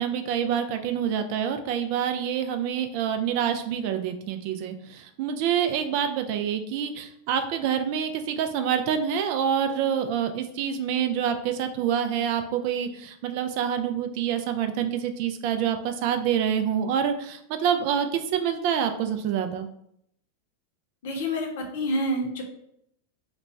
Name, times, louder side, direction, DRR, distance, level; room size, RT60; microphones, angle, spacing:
voice 1, 0.0-19.7, right 8 dB, 45° right, 7 dB, 0.3 m, -27 dB
voice 2, 21.0-22.4, equal, 55° left, 3 dB, 0.7 m, -28 dB
3.0 x 2.2 x 4.0 m, 0.73 s
figure-of-eight pair, 90°, 0 cm